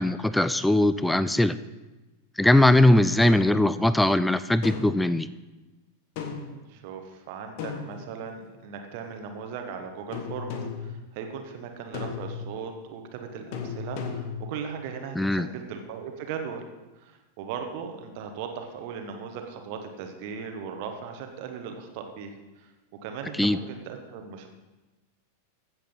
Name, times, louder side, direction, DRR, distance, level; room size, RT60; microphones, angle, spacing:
voice 1, 0.0-1.6 2.4-5.3 15.2-15.5 23.4-23.6, left 1 dB, 5° left, 14 dB, 0.4 m, -20 dB
sound 1, 3.2-3.6 4.6-5.1 6.2-6.6 7.6-8.4 10.1-10.9 11.9-12.5 13.5-14.5, left 6 dB, 45° left, 1.3 m, -35 dB
voice 2, 6.7-16.6 17.0-22.7 23.0-24.5, right 6 dB, 45° right, 5 dB, 1.4 m, -38 dB
15.5 x 7.8 x 3.9 m, 1.1 s
figure-of-eight pair, 90°, 0 cm